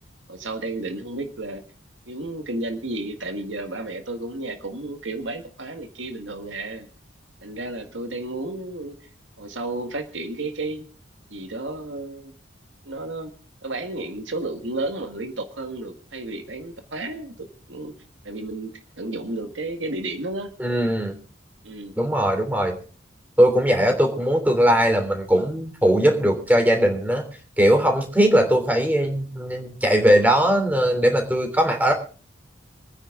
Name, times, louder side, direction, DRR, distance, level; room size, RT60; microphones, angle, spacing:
voice 1, 0.3-1.6 2.1-6.9 7.4-9.0 9.4-10.8 11.3-12.3 12.8-13.3 13.6-17.9 18.2-20.5 21.6-21.9, right 2 dB, 85° right, 6 dB, 1.8 m, -32 dB
voice 2, 20.6-21.1 22.0-22.8 23.4-27.2 27.6-31.9, equal, 10° right, 5 dB, 3.2 m, -19 dB
25.0 x 9.8 x 3.8 m, 0.40 s
head